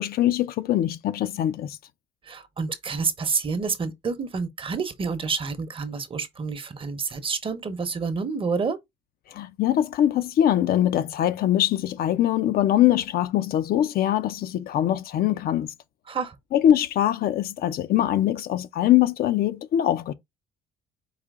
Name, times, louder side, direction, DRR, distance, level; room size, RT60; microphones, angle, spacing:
voice 1, 0.0-1.8 9.3-15.7 16.5-20.1, left 12 dB, 65° left, 0.6 m, -22 dB
voice 2, 2.2-8.8 16.1-16.3, right 5 dB, 30° right, 0.9 m, -28 dB
5.0 x 2.8 x 3.6 m
cardioid pair, 110°, 17 cm